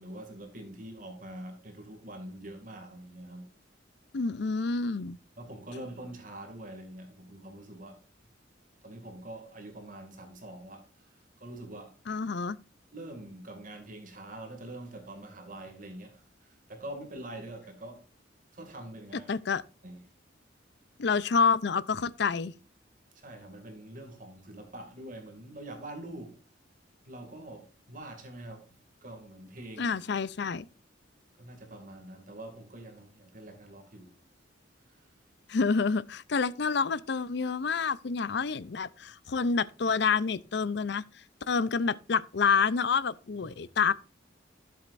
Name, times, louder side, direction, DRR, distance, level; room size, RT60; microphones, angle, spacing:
voice 1, 0.0-3.5 5.4-8.0 8.8-12.0 12.9-18.0 18.5-19.3 19.8-20.0 23.1-26.4 27.1-28.8 29.0-30.0 31.4-34.2 34.9-35.1 43.4-43.5, right 1 dB, 45° right, 2.3 m, -45 dB
voice 2, 4.1-5.2 12.1-12.6 19.3-19.6 21.0-22.5 29.8-30.7 35.5-41.0 41.5-43.9, left 5 dB, 60° left, 0.5 m, -28 dB
12.0 x 7.8 x 2.6 m
head